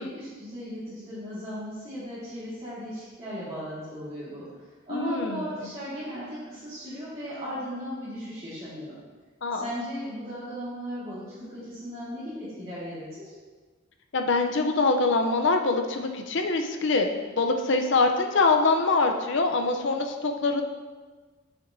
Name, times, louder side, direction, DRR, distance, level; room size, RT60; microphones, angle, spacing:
voice 1, 0.0-4.5 4.9-8.9 9.5-13.3, equal, 25° right, -13 dB, 1.9 m, -36 dB
voice 2, 4.9-5.4 9.4-9.7 14.1-17.1 17.4-20.6, left 3 dB, 55° left, 4 dB, 0.6 m, -24 dB
8.8 x 6.1 x 2.7 m, 1.4 s
head